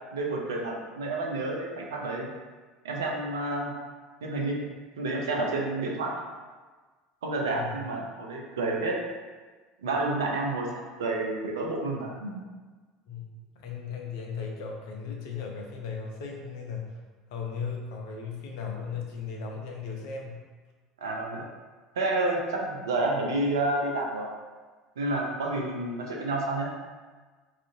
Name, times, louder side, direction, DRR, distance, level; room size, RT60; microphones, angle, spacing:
voice 1, 0.1-2.3 2.8-3.7 4.2-4.7 5.0-6.2 7.2-9.0 9.8-12.4 21.0-21.4 22.0-24.3 25.0-26.7, right 2 dB, 75° right, -1 dB, 0.4 m, -29 dB
voice 2, 7.5-7.8 13.1-13.3 13.6-17.0 17.3-20.4, left 5 dB, 65° left, 0 dB, 0.5 m, -36 dB
2.5 x 2.5 x 2.6 m, 1.4 s
figure-of-eight pair, 70°, 2 cm